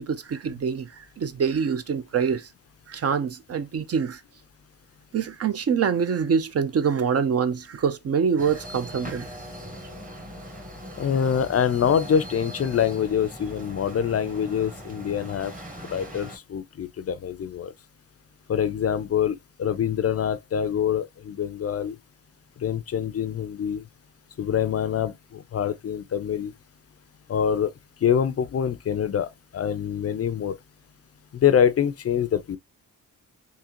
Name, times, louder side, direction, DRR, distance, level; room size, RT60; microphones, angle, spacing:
voice 1, 0.0-2.5 2.9-4.2 5.1-9.3, right 6 dB, 45° right, 0.5 m, -25 dB
sound 1, 8.4-16.4, equal, 25° right, 1.2 m, -40 dB
voice 2, 11.0-15.5 15.9-17.7 18.5-22.0 22.6-23.8 24.4-26.5 27.3-27.7 28.0-30.6 31.3-32.6, left 8 dB, 45° left, 0.4 m, -25 dB
3.7 x 2.8 x 2.9 m
cardioid pair, 70°, 35 cm